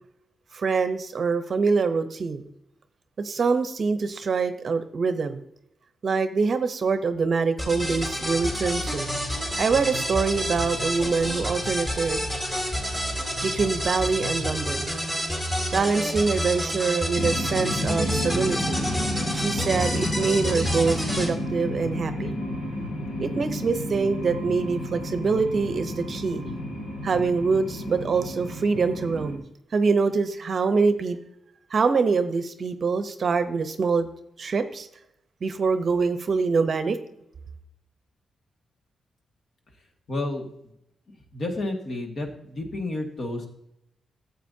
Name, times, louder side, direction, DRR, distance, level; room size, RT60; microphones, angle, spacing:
voice 1, 0.5-2.5 3.2-5.4 6.0-9.1 9.6-12.2 13.4-15.0 15.7-18.8 19.3-22.3 23.2-26.4 27.0-29.4 29.7-31.2 31.7-34.1 34.4-34.9 35.4-37.0, right 4 dB, 40° right, 10 dB, 0.8 m, -25 dB
sound 1, 7.6-21.3, equal, 20° left, 2.5 m, -29 dB
sound 2, 17.1-29.4, left 1 dB, 85° left, 2.8 m, -31 dB
voice 2, 40.1-40.4 41.3-43.5, left 2 dB, 50° left, 2 dB, 1.9 m, -30 dB
14.0 x 8.0 x 2.8 m, 0.77 s
wide cardioid pair, 150°, 0 cm